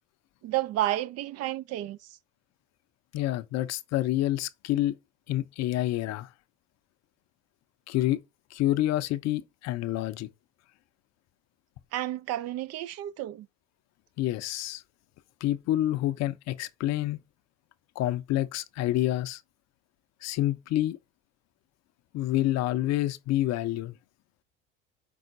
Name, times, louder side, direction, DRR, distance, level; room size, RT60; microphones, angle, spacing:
voice 1, 0.4-2.0 11.9-13.5, right 14 dB, 45° right, 0.4 m, -31 dB
voice 2, 3.1-5.0 5.3-6.3 7.9-8.2 8.5-10.3 14.2-14.8 15.4-17.2 18.0-19.4 20.2-21.0 22.1-23.9, left 14 dB, 50° left, 0.6 m, -28 dB
5.4 x 3.8 x 2.5 m
hypercardioid pair, 75°, 35 cm